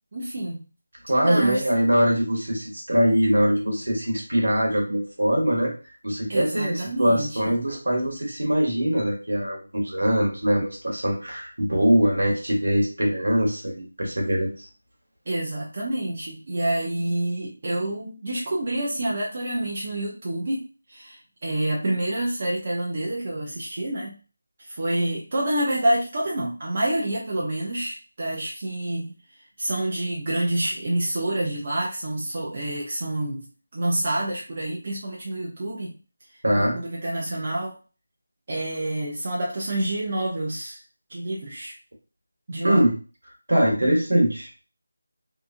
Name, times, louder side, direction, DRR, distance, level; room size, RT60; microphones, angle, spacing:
voice 1, 0.1-0.7 1.2-1.6 6.3-7.5 15.3-20.6 20.9-24.2 24.6-29.1 29.6-33.4 33.7-36.0 36.6-37.8 38.5-40.8 41.1-41.8 42.5-42.9, right 1 dB, 40° right, -3 dB, 0.6 m, -28 dB
voice 2, 1.1-5.7 6.0-14.7 36.4-36.7 42.6-42.9 43.5-44.5, equal, 80° right, -1 dB, 1.2 m, -22 dB
2.8 x 2.3 x 2.5 m, 0.34 s
figure-of-eight pair, 165°, 0 cm